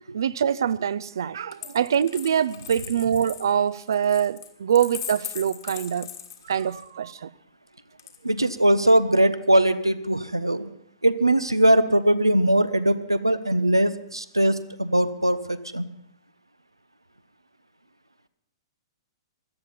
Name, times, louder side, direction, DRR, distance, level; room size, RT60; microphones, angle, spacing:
voice 1, 0.1-6.1 6.4-7.3, right 8 dB, 60° right, 0.6 m, -24 dB
Coin (dropping), 1.5-6.9 8.0-8.7, left 10 dB, 55° left, 1.9 m, -40 dB
voice 2, 8.2-10.7 11.0-15.8, right 1 dB, 90° right, 0.9 m, -21 dB
17.0 x 13.0 x 5.7 m
figure-of-eight pair, 110°, 2 cm